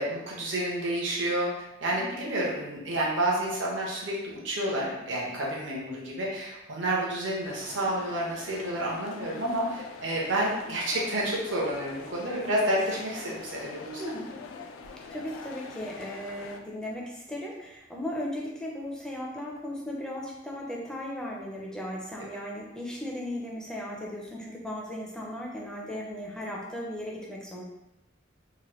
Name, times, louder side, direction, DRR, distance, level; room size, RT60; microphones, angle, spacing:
voice 1, 0.0-14.0, right 1 dB, 70° right, -4 dB, 0.8 m, -30 dB
sound 1, 7.4-16.6, left 4 dB, 90° left, 0.3 m, -44 dB
voice 2, 14.0-14.3 15.1-27.6, left 1 dB, 5° left, -3 dB, 0.4 m, -36 dB
2.9 x 2.1 x 3.0 m, 0.92 s
head